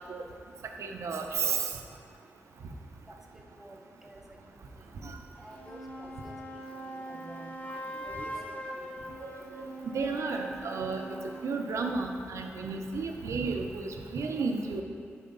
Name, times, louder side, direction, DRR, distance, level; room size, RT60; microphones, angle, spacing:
voice 1, 0.8-1.7 5.0-5.2 8.2-8.3 9.2-9.6 9.9-11.1 11.4-14.8, right 4 dB, 85° right, 3 dB, 0.6 m, -32 dB
voice 2, 3.6-4.2 5.0-5.1 5.4-6.4 6.7-7.6 8.0-9.1, right 1 dB, 5° right, 1 dB, 0.6 m, -50 dB
sound 1, 5.4-11.6, right 1 dB, 30° left, 0.7 m, -42 dB
9.0 x 4.9 x 3.9 m, 2.3 s
wide cardioid pair, 135°, 5 cm